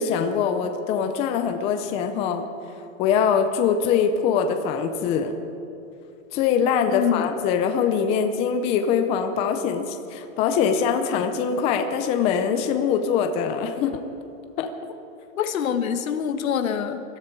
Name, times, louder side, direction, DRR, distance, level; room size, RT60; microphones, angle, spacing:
voice 1, 0.0-2.4 3.0-5.4 6.3-14.0 14.6-14.7, left 7 dB, 15° left, 7 dB, 0.5 m, -23 dB
voice 2, 6.9-7.4 15.4-17.0, left 8 dB, 80° left, 9 dB, 1.4 m, -25 dB
21.5 x 13.0 x 4.6 m, 2.9 s
hypercardioid pair, 155°, 41 cm